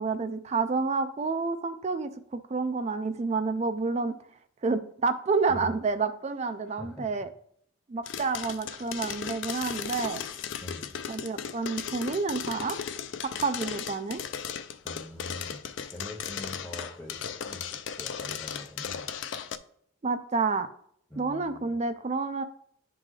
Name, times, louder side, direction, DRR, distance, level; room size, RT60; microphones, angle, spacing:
voice 1, 0.0-4.2 4.6-7.3 7.9-10.2 11.1-12.8 13.2-14.2 20.0-20.7 21.2-22.4, right 4 dB, 30° right, 9 dB, 0.3 m, -29 dB
voice 2, 6.6-7.1 10.6-10.9 14.8-15.6 15.9-19.1 21.1-21.7, left 1 dB, 10° left, -6 dB, 1.2 m, -43 dB
sound 1, 8.1-19.6, left 8 dB, 55° left, 0.4 m, -36 dB
10.5 x 3.8 x 3.2 m, 0.65 s
head